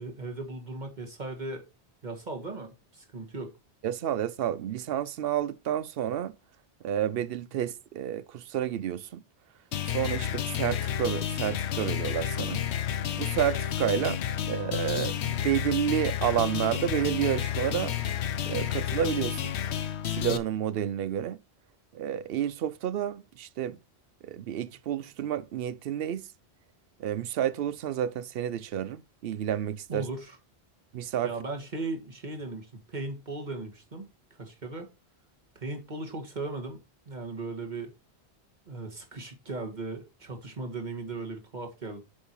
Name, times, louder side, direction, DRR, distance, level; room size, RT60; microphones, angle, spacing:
voice 1, 0.0-1.6 2.0-3.5 29.9-30.4 31.2-34.1 34.4-34.9 35.6-36.8 37.1-37.9 38.7-42.0, right 3 dB, 45° right, 1.9 m, -37 dB
voice 2, 3.8-6.4 6.8-9.2 9.8-12.6 13.1-14.2 14.4-17.9 18.5-19.5 20.1-21.4 21.9-23.8 24.2-26.3 27.0-30.0 30.9-31.3, right 10 dB, 65° right, 0.7 m, -30 dB
sound 1, 9.7-20.4, left 10 dB, 90° left, 1.0 m, -31 dB
7.5 x 5.6 x 4.5 m
omnidirectional pair, 1.1 m